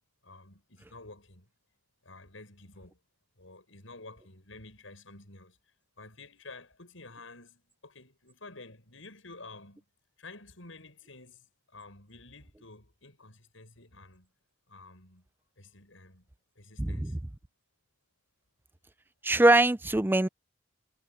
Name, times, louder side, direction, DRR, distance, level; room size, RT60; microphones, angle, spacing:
voice 1, 0.2-1.5 2.0-3.0 3.4-5.6 6.0-9.8 10.2-14.3 14.7-15.3 15.6-16.3 16.6-17.2, left 3 dB, 80° left, 7.2 m, -50 dB
voice 2, 16.8-17.1 19.2-20.3, right 2 dB, 10° right, 0.4 m, -22 dB
head